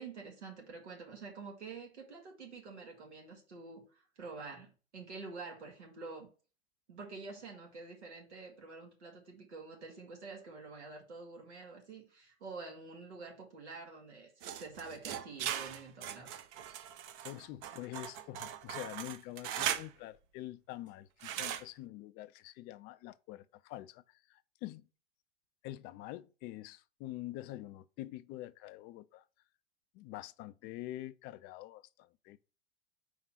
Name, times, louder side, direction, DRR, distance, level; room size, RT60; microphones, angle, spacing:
voice 1, 0.0-6.3 6.9-16.3, right 4 dB, 80° right, 1.9 m, -48 dB
sound 1, 14.4-19.9 21.2-21.6, right 10 dB, 45° right, 0.8 m, -39 dB
voice 2, 17.0-24.9 25.6-29.2 29.9-32.4, left 15 dB, 30° left, 0.4 m, -46 dB
4.7 x 3.7 x 5.6 m
hypercardioid pair, 95°, 34 cm